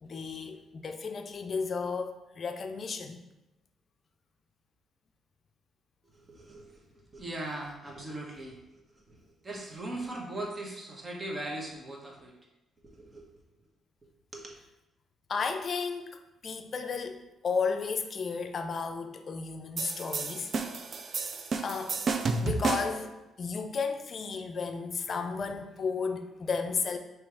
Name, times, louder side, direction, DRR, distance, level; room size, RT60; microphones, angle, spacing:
voice 1, 0.0-3.2 15.3-20.5 21.6-22.0 22.4-23.1 23.4-27.0, left 5 dB, 45° left, 6 dB, 0.5 m, -33 dB
voice 2, 6.0-8.8 9.1-12.3 12.8-13.3 14.3-14.6, right 1 dB, 35° right, -1 dB, 1.1 m, -40 dB
sound 1, 19.8-23.1, right 4 dB, 50° right, 0.4 m, -31 dB
3.2 x 3.1 x 4.7 m, 0.96 s
cardioid pair, 90°, 0 cm